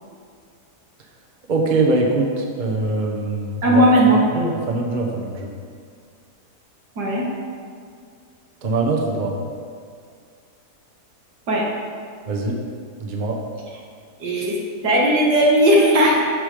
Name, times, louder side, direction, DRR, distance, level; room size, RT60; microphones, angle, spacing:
voice 1, 1.5-5.5 8.6-9.3 12.3-12.6 13.0-13.3, right 2 dB, 35° right, 0 dB, 1.1 m, -23 dB
voice 2, 3.6-4.2 7.0-7.3 11.5-11.6 14.2-14.6 14.8-16.3, equal, 85° right, -4 dB, 2.4 m, -16 dB
13.0 x 5.5 x 5.0 m, 2.2 s
omnidirectional pair, 1.7 m